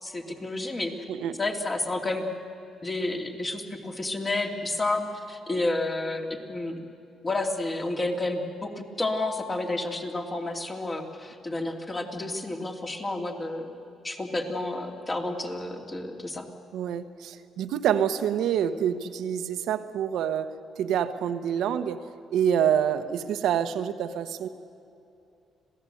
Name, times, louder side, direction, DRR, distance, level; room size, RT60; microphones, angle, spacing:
voice 1, 0.0-0.9 1.4-2.2 2.8-6.8 7.2-13.7 14.0-16.5, left 2 dB, 30° left, 2 dB, 2.7 m, -30 dB
voice 2, 1.1-1.4 16.7-22.0 22.3-24.5, right 9 dB, 80° right, 9 dB, 1.1 m, -27 dB
26.5 x 17.0 x 7.9 m, 2.7 s
cardioid pair, 90°, 0 cm